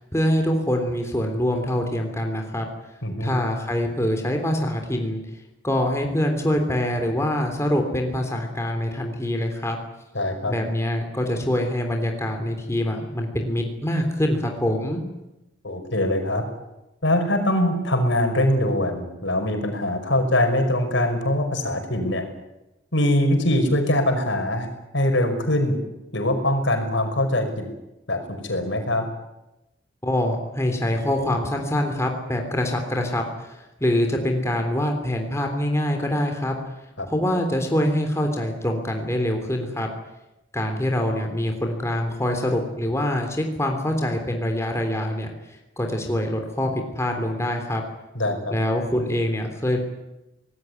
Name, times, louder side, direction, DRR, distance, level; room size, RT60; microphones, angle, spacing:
voice 1, 0.0-2.7 3.2-5.2 5.6-9.8 10.5-15.0 30.0-36.5 37.1-39.9 40.5-45.3 45.8-47.8 48.5-49.8, left 1 dB, 15° left, 3 dB, 3.4 m, -24 dB
voice 2, 3.0-3.3 10.1-10.5 15.6-16.4 17.0-22.2 22.9-24.7 24.9-25.8 26.1-27.7 28.1-29.1 37.0-37.1 48.1-48.6, left 1 dB, 65° left, 5 dB, 5.8 m, -22 dB
25.0 x 19.5 x 9.7 m, 0.95 s
head